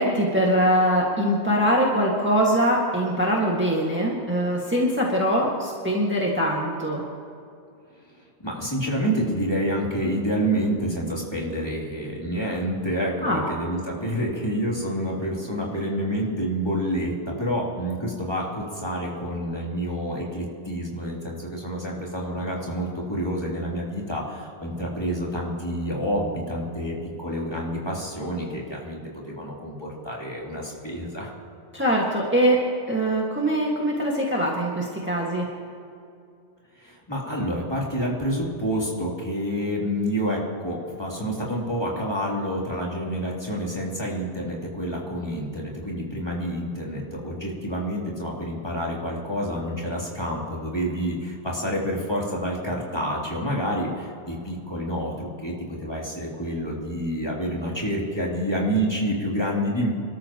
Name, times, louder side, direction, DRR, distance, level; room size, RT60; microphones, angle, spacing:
voice 1, 0.0-7.0 13.2-13.4 31.7-32.6 32.9-35.5, equal, 10° right, -3 dB, 1.8 m, -22 dB
voice 2, 8.4-31.3 36.7-59.9, equal, 20° left, -4 dB, 3.1 m, -28 dB
26.5 x 13.5 x 3.0 m, 2.5 s
omnidirectional pair, 1.1 m